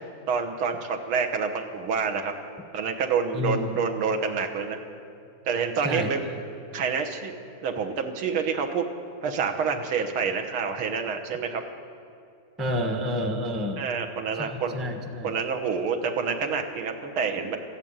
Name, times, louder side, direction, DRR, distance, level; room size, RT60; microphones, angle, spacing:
voice 1, 0.3-2.3 2.7-4.8 5.5-6.2 6.7-8.9 9.2-11.6 13.8-14.8 15.2-17.6, right 5 dB, 90° right, 3 dB, 2.0 m, -28 dB
voice 2, 3.3-3.7 5.8-6.4 12.6-13.9 14.4-15.3, left 1 dB, ahead, 4 dB, 0.5 m, -29 dB
14.0 x 10.5 x 8.8 m, 2.5 s
omnidirectional pair, 2.3 m